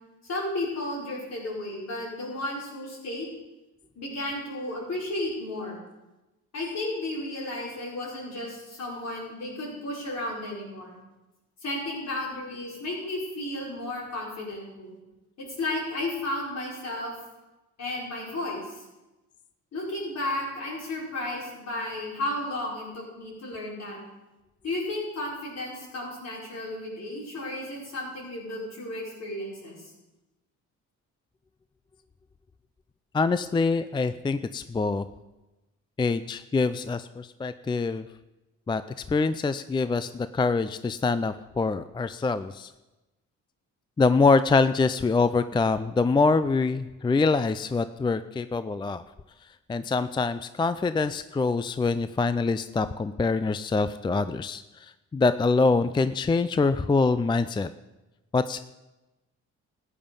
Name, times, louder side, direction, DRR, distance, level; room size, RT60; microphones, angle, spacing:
voice 1, 0.2-3.3 4.0-5.8 6.5-11.0 11.6-15.0 15.4-17.1 17.8-18.9 19.7-24.0 24.6-29.9, left 1 dB, 60° left, -4 dB, 5.4 m, -33 dB
voice 2, 33.1-35.1 36.0-38.1 38.7-38.8 39.1-42.7 44.0-49.0 49.7-57.7 58.3-58.6, left 4 dB, 15° left, 12 dB, 0.4 m, -25 dB
14.0 x 9.0 x 5.5 m, 1.0 s
cardioid pair, 90°, 30 cm